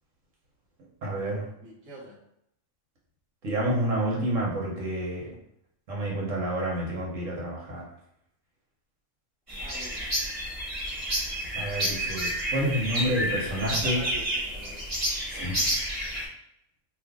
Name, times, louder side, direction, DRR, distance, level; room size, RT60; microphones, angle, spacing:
voice 1, 1.0-1.5 3.4-5.3 5.9-7.8 11.6-14.0 15.3-15.6, right 1 dB, 90° right, -4 dB, 1.4 m, -29 dB
voice 2, 1.5-2.2 9.6-10.0 13.4-14.9, right 1 dB, 65° right, -4 dB, 1.1 m, -44 dB
sound 1, 9.5-16.2, equal, 30° right, 1.1 m, -30 dB
2.8 x 2.5 x 3.6 m, 0.77 s
omnidirectional pair, 1.3 m